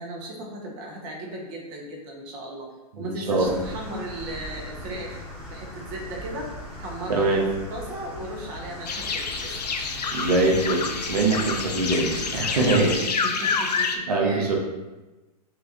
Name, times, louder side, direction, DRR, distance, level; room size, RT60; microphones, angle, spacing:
voice 1, 0.0-2.7 3.0-5.2 5.5-9.5 13.0-14.5, right 1 dB, 40° right, -1 dB, 1.1 m, -36 dB
voice 2, 3.0-3.4 7.1-7.4 10.1-13.1 13.4-13.5 14.1-14.5, right 2 dB, 75° right, -2 dB, 0.9 m, -23 dB
sound 1, 3.4-13.0, equal, 5° right, 1.3 m, -40 dB
sound 2, 8.8-14.0, left 5 dB, 85° left, 0.5 m, -28 dB
5.6 x 2.6 x 2.6 m, 1.1 s
hypercardioid pair, 115°, 20 cm